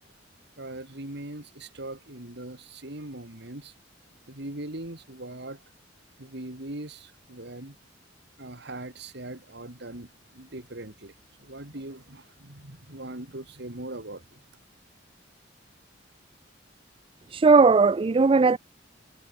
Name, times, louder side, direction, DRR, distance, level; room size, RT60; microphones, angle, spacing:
voice 1, 0.6-3.7 4.3-5.6 6.2-7.8 8.4-11.1 11.4-14.4, right 1 dB, 65° right, 3.1 m, -40 dB
voice 2, 17.3-18.6, right 4 dB, 30° right, 0.4 m, -18 dB
head